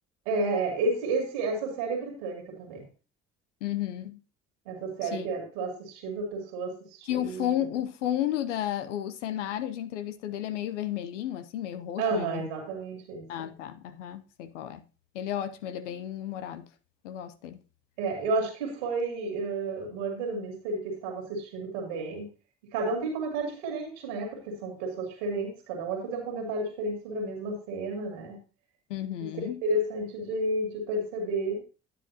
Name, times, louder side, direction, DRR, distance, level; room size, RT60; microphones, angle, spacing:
voice 1, 0.3-2.8 4.7-7.6 12.0-13.5 18.0-22.3 22.7-28.4 29.2-31.6, right 2 dB, 85° right, 2.6 m, -31 dB
voice 2, 3.6-4.2 5.0-5.3 7.1-12.5 13.3-14.8 15.1-16.7 17.0-17.6 28.9-29.6, left 11 dB, 90° left, 0.6 m, -33 dB
10.0 x 9.4 x 2.8 m
hypercardioid pair, 50°, 35 cm